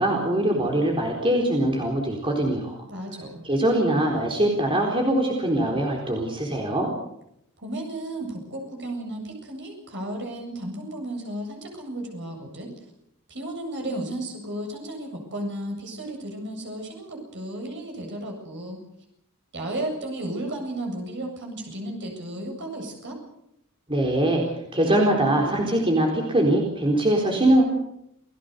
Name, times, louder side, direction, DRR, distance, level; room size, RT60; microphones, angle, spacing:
voice 1, 0.0-2.8 3.4-6.9 23.9-24.4 24.7-27.6, right 1 dB, 25° right, 1 dB, 4.2 m, -22 dB
voice 2, 2.9-3.4 7.6-12.7 13.3-18.8 19.5-23.2, right 1 dB, 55° right, 2 dB, 7.9 m, -34 dB
29.0 x 17.5 x 6.9 m, 0.78 s
head